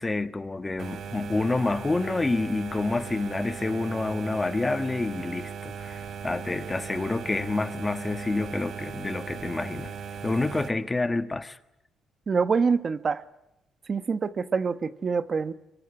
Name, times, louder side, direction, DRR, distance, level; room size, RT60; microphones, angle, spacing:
voice 1, 0.0-9.9 10.2-11.6, left 2 dB, 20° left, 1.4 m, -28 dB
sound 1, 0.8-10.7, right 6 dB, 60° right, 2.8 m, -38 dB
voice 2, 12.3-13.2 13.9-15.5, right 5 dB, 40° right, 1.1 m, -25 dB
24.0 x 23.0 x 9.9 m
cardioid pair, 90°, 0 cm